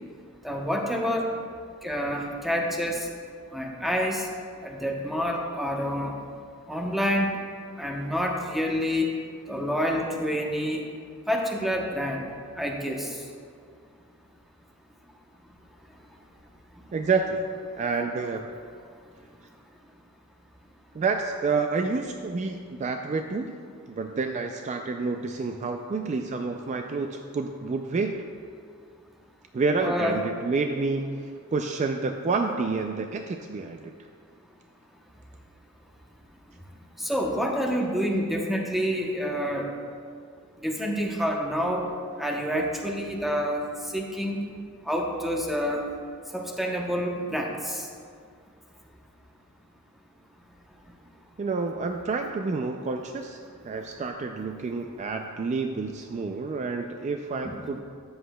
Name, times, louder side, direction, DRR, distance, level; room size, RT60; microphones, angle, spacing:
voice 1, 0.4-1.4 1.8-3.1 3.5-4.3 4.6-6.2 6.6-7.4 7.8-9.1 9.5-10.9 11.3-12.3 12.6-13.3 15.9-16.0 16.7-16.9 19.2-19.3 29.8-30.2 37.0-39.7 40.6-41.9 42.2-44.5 44.8-45.9 46.3-47.9 50.8-50.9 57.4-57.6, equal, ahead, 0 dB, 0.8 m, -28 dB
voice 2, 16.9-17.5 17.8-18.4 20.9-23.6 23.9-28.1 29.5-31.2 31.5-33.9 51.4-57.8, right 4 dB, 35° right, 4 dB, 0.3 m, -29 dB
13.0 x 7.9 x 2.2 m, 2.1 s
head